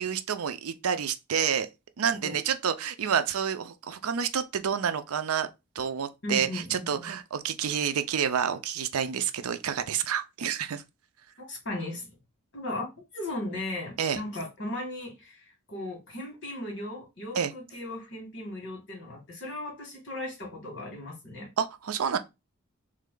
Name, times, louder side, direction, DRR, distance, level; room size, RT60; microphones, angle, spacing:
voice 1, 0.0-1.7 2.0-5.5 5.8-10.8 14.0-14.2 17.3-17.5 21.6-22.2, right 7 dB, 80° right, 0.5 m, -29 dB
voice 2, 6.2-7.1 11.4-12.1 12.5-12.9 13.1-21.5, left 1 dB, 55° left, 2.0 m, -37 dB
3.3 x 3.2 x 3.7 m
head